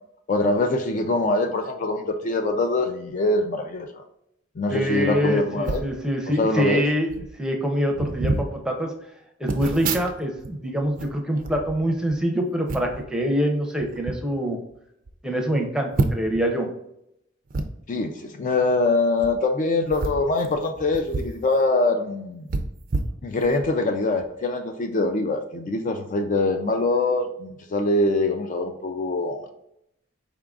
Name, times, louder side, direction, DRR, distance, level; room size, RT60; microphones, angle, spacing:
voice 1, 0.3-4.0 4.6-5.9 6.4-6.8 17.9-22.5 23.2-29.5, left 2 dB, 40° left, 5 dB, 0.3 m, -23 dB
voice 2, 4.7-7.1 7.4-8.9 9.4-14.6 15.2-16.7, equal, 5° right, 1 dB, 0.6 m, -25 dB
sound 1, 5.6-5.9 6.8-6.9 7.1-7.3 7.9-8.5 9.5-10.5 10.8-12.2 12.7-13.0 13.8-14.2 14.7-14.8 15.1-15.2 15.9-16.4 17.5-17.7 19.1-19.3 19.9-21.4 21.7-21.8 22.5-23.7 24.2-24.3, right 3 dB, 45° right, 0.4 m, -28 dB
4.6 x 3.6 x 2.4 m, 0.79 s
head